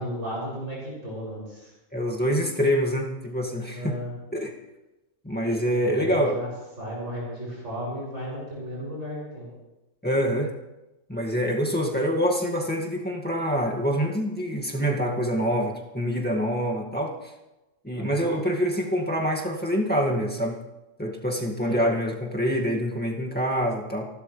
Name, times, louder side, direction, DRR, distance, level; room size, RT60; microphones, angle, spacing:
voice 1, 0.0-1.7 3.7-4.1 5.8-6.5 6.8-9.5 17.9-18.2 21.7-21.8, equal, 60° right, -5 dB, 7.6 m, -34 dB
voice 2, 1.9-4.0 4.3-4.5 5.2-6.4 10.0-10.5 11.1-17.3 17.8-20.6 21.0-24.0, equal, 5° left, -2 dB, 2.0 m, -26 dB
28.5 x 12.5 x 3.4 m, 1.0 s
omnidirectional pair, 1.4 m